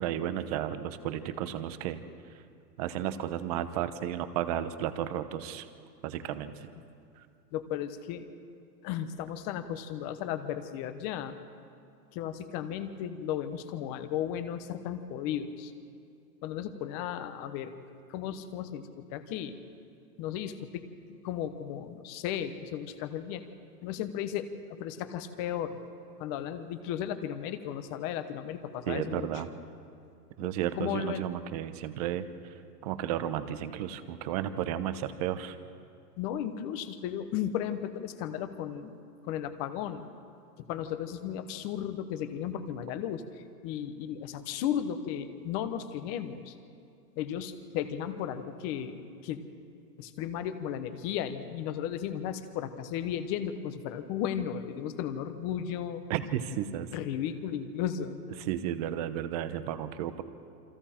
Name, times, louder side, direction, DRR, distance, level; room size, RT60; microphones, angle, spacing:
voice 1, 0.0-2.0 2.3-2.4 2.8-5.7 6.0-6.7 7.2-7.3 28.9-29.5 30.4-32.5 32.8-35.6 56.1-56.9 58.4-60.2, right 11 dB, 25° right, 11 dB, 0.8 m, -33 dB
voice 2, 7.5-8.3 8.8-11.3 12.1-15.7 16.4-17.7 18.1-19.5 20.2-20.8 21.2-23.4 23.8-25.8 26.2-29.3 30.4-30.5 30.8-31.3 36.2-40.1 40.7-46.5 47.2-49.4 50.0-56.0 56.9-58.2, left 9 dB, 25° left, 10 dB, 1.0 m, -35 dB
28.5 x 25.0 x 4.4 m, 2.4 s
hypercardioid pair, 160°, 48 cm